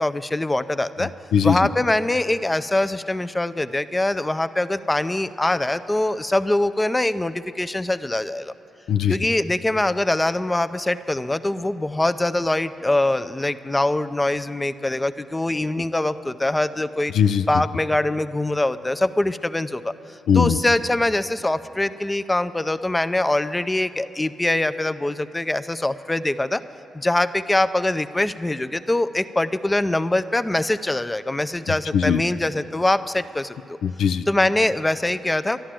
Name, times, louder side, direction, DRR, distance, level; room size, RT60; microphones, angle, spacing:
voice 1, 0.0-1.1 1.4-8.5 9.1-17.1 17.5-19.9 20.3-26.6 26.9-33.8 34.3-35.6, left 1 dB, 20° left, 12 dB, 0.5 m, -23 dB
voice 2, 1.0-1.7 8.9-9.2 17.1-17.5 20.3-20.6 31.7-32.2 33.8-34.2, left 8 dB, 80° left, 10 dB, 0.3 m, -20 dB
11.5 x 11.5 x 7.5 m, 2.6 s
supercardioid pair, 55°, 0 cm